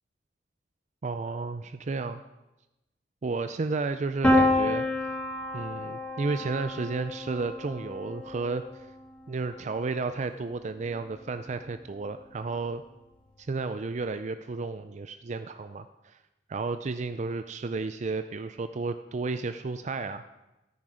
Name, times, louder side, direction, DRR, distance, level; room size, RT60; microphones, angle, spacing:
voice 1, 1.0-2.2 3.2-4.8 5.5-8.6 9.3-12.8 13.4-16.2 16.5-20.2, right 3 dB, 40° right, 10 dB, 0.4 m, -32 dB
Piano, 4.2-10.0, left 1 dB, 10° left, 2.2 m, -29 dB
13.5 x 9.8 x 5.0 m, 0.99 s
head